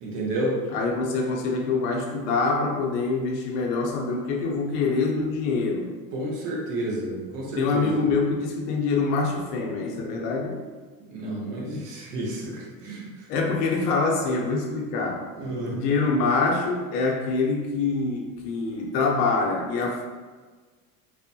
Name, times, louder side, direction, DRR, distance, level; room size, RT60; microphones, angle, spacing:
voice 1, 0.0-0.6 6.1-8.0 11.1-13.1 15.4-15.8, right 1 dB, 55° right, -2 dB, 0.9 m, -30 dB
voice 2, 0.7-5.9 7.6-10.6 13.3-15.3 15.7-20.0, left 4 dB, 75° left, 1 dB, 0.7 m, -25 dB
3.0 x 2.1 x 2.7 m, 1.4 s
hypercardioid pair, 90°, 48 cm